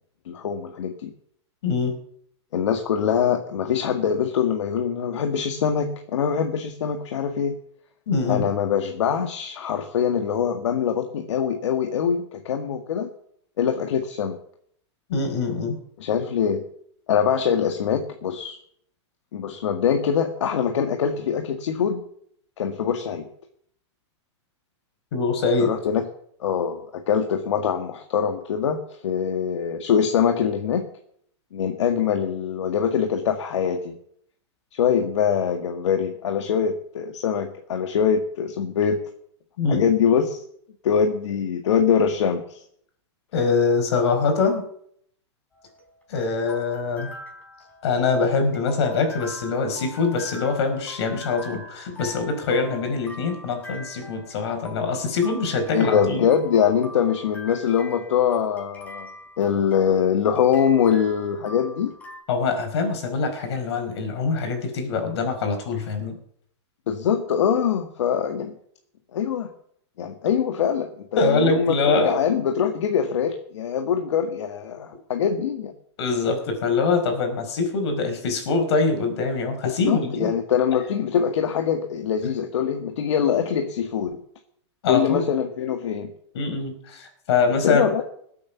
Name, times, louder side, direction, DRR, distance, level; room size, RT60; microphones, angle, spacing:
voice 1, 0.3-1.1 2.5-7.6 8.3-13.1 13.6-14.4 16.0-16.6 17.1-18.6 19.3-22.0 22.6-23.3 25.6-26.1 26.4-30.9 31.5-34.0 34.7-39.0 39.7-40.4 40.8-42.6 55.7-61.9 66.9-68.6 69.1-69.5 70.0-75.7 79.7-84.3 84.9-86.1 87.6-88.0, left 7 dB, 80° left, 5 dB, 1.8 m, -23 dB
voice 2, 8.1-8.4 15.1-15.7 25.1-25.7 39.6-39.9 43.3-44.6 46.1-47.1 47.8-56.3 62.3-66.2 71.2-72.2 76.0-80.3 84.8-85.2 86.3-87.8, left 4 dB, 65° left, 5 dB, 5.0 m, -23 dB
sound 1, 45.5-62.2, left 2 dB, 10° left, 4.1 m, -43 dB
19.5 x 8.6 x 7.0 m, 0.67 s
supercardioid pair, 150°, 15 cm